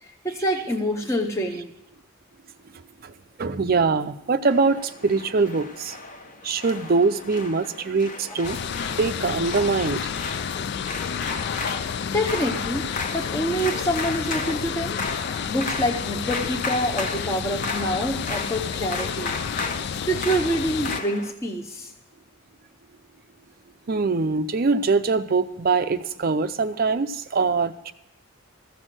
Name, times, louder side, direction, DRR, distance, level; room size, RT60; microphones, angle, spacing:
voice 1, 0.0-1.7 11.9-15.0 15.5-19.3 20.1-21.9, equal, 15° left, 1 dB, 0.7 m, -26 dB
voice 2, 3.0-6.0 6.4-8.6 9.0-10.1 23.9-27.9, right 4 dB, 45° right, 10 dB, 0.5 m, -23 dB
sound 1, 4.5-21.3, left 3 dB, 40° left, 1.1 m, -34 dB
sound 2, 8.4-21.0, left 7 dB, 55° left, 0.3 m, -30 dB
15.0 x 6.4 x 7.6 m, 0.92 s
head